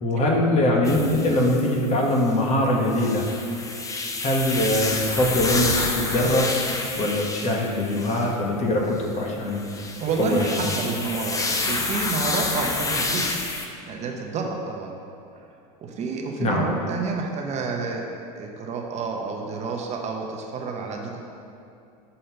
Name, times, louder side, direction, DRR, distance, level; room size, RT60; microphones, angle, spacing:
voice 1, 0.0-3.3 4.2-6.5 6.9-9.6 10.2-10.7 16.4-16.7, left 1 dB, 35° left, -1 dB, 1.2 m, -22 dB
Pururupunpun Ambient Sound, 0.8-2.4 2.8-8.3 9.3-13.7, left 3 dB, 15° left, 0.6 m, -29 dB
voice 2, 10.0-13.3 13.8-15.0 15.8-18.1 18.4-21.2, right 4 dB, 35° right, 1 dB, 0.8 m, -29 dB
6.6 x 4.2 x 5.4 m, 2.5 s
supercardioid pair, 110°, 19 cm